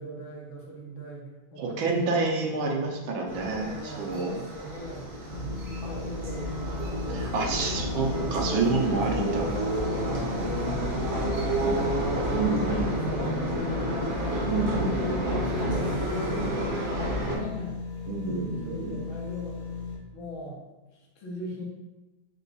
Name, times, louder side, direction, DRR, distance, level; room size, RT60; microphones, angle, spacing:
voice 1, 0.0-2.5 3.6-7.8 9.0-14.0 14.5-15.0 15.6-17.8 18.2-19.6 20.1-20.6 20.9-21.6, right 2 dB, 75° left, -2 dB, 1.6 m, -40 dB
voice 2, 1.6-4.4 7.1-9.4 12.3-12.9 14.5-15.5 18.1-19.0, right 3 dB, 80° right, 1 dB, 1.4 m, -29 dB
sound 1, 3.3-17.4, right 1 dB, 55° right, 0.8 m, -30 dB
sound 2, 5.3-20.0, left 4 dB, 50° left, 1.2 m, -37 dB
4.5 x 2.2 x 4.0 m, 1.1 s
omnidirectional pair, 2.2 m